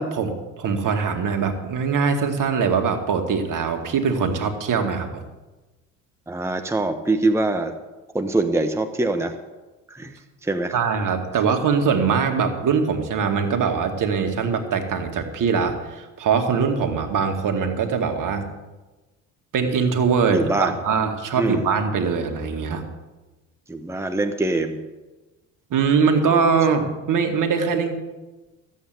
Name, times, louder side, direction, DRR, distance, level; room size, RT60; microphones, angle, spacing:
voice 1, 0.0-5.2 10.7-18.5 19.5-22.8 25.7-28.0, right 5 dB, 50° right, 5 dB, 2.2 m, -22 dB
voice 2, 6.3-7.7 8.1-9.3 9.9-10.7 20.3-20.7 21.4-21.7 23.7-24.8, right 2 dB, 5° right, 5 dB, 1.3 m, -23 dB
14.0 x 8.5 x 7.9 m, 1.1 s
hypercardioid pair, 65°, 39 cm